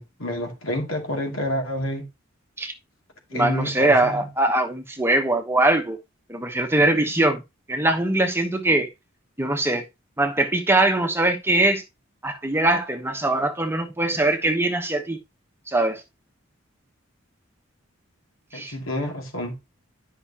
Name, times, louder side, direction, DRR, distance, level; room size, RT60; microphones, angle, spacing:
voice 1, 0.0-2.1 3.3-4.3 18.5-19.6, left 1 dB, 80° left, 2.6 m, -28 dB
voice 2, 3.3-6.0 6.3-7.4 7.7-8.9 9.4-9.8 10.2-11.8 12.2-15.2 15.7-16.0 18.5-18.7, right 2 dB, 10° right, 1.1 m, -22 dB
11.0 x 5.6 x 2.9 m
head